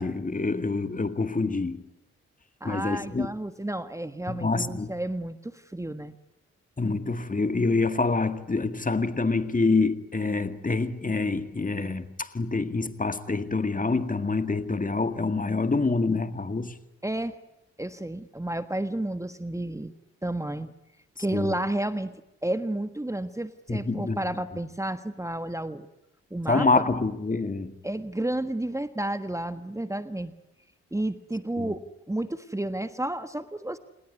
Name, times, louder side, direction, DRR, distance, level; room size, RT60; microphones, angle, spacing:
voice 1, 0.0-1.9 2.6-3.3 4.3-4.9 6.8-16.8 21.3-21.5 23.7-24.2 26.5-27.8 31.6-31.7, left 3 dB, 30° left, 2.1 m, -26 dB
voice 2, 2.6-6.1 17.0-17.4 17.8-19.9 20.2-20.7 21.2-22.1 22.4-25.9 26.3-26.8 27.8-30.3 30.9-31.8 32.1-33.8, right 1 dB, 10° right, 1.5 m, -31 dB
28.0 x 20.5 x 9.8 m
supercardioid pair, 50°, 29 cm